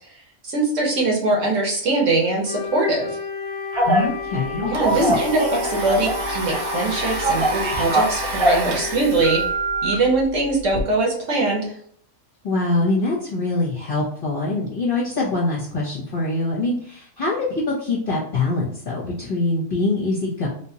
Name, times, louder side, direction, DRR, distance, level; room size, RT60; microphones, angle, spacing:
voice 1, 0.4-3.1 4.6-9.4 9.8-11.7, right 2 dB, 60° right, -1 dB, 1.5 m, -22 dB
Wind instrument woodwind instrument, 2.4-10.2, left 5 dB, 30° left, 0.6 m, -32 dB
Telephone, 3.7-4.1 4.6-6.2 6.5-8.7 9.2-9.9, right 1 dB, 35° right, 0.5 m, -22 dB
voice 2, 3.8-5.1 12.4-17.4 17.7-20.5, left 2 dB, 45° left, -6 dB, 1.0 m, -24 dB
Domestic sounds home sounds, 3.8-3.9 4.2-10.8, right 2 dB, 90° right, 1.2 m, -31 dB
3.5 x 2.9 x 2.8 m, 0.62 s
omnidirectional pair, 1.5 m